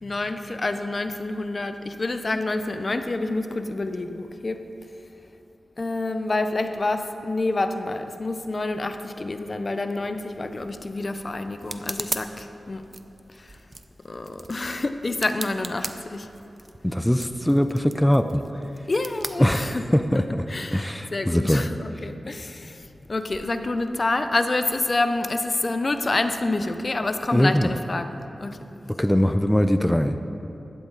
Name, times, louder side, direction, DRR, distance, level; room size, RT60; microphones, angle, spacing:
voice 1, 0.0-4.6 5.8-12.8 14.1-16.3 18.9-22.7 23.1-28.6, left 2 dB, 45° left, 9 dB, 0.7 m, -28 dB
sound 1, 10.3-20.2, right 2 dB, 35° right, 0.7 m, -39 dB
voice 2, 16.8-18.4 19.4-20.4 20.7-21.6 27.3-27.8 29.0-30.2, equal, 10° left, 8 dB, 0.6 m, -21 dB
16.5 x 12.5 x 4.0 m, 3.0 s
wide cardioid pair, 65°, 0 cm